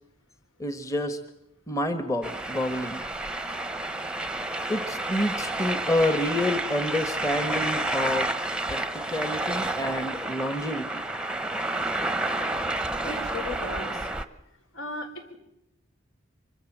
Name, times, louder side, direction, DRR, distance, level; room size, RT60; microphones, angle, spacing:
voice 1, 0.6-1.2 1.7-3.0 4.7-8.3 8.7-11.0, left 1 dB, 15° left, 9 dB, 1.2 m, -28 dB
sound 1, 2.2-14.2, right 2 dB, 5° right, 0.9 m, -30 dB
voice 2, 13.0-13.9 14.7-15.1, left 2 dB, 75° left, 6 dB, 4.5 m, -35 dB
25.0 x 24.5 x 7.4 m, 0.84 s
head